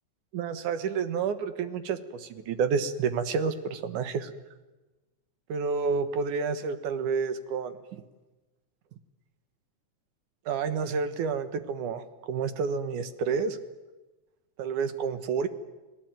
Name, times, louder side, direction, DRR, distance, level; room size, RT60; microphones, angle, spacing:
voice 1, 0.3-4.3 5.5-8.0 10.5-13.6 14.6-15.5, right 5 dB, 85° right, 11 dB, 2.9 m, -29 dB
30.0 x 19.0 x 9.1 m, 1.1 s
omnidirectional pair, 3.5 m